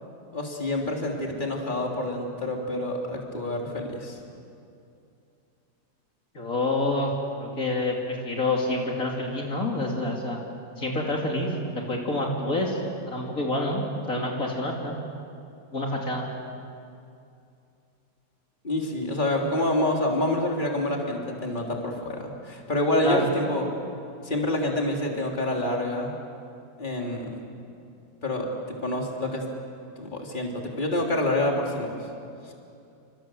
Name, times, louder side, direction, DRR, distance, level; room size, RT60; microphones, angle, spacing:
voice 1, 0.3-4.2 18.6-23.7 24.2-26.2 26.8-27.4 28.2-29.4 30.0-32.0 32.5-32.6, left 1 dB, 30° left, 0 dB, 3.5 m, -27 dB
voice 2, 6.3-7.1 7.4-10.4 10.8-12.8 13.1-14.9 15.7-16.3 23.0-23.3, left 2 dB, 55° left, -1 dB, 3.2 m, -27 dB
29.5 x 26.0 x 7.7 m, 2.6 s
omnidirectional pair, 1.8 m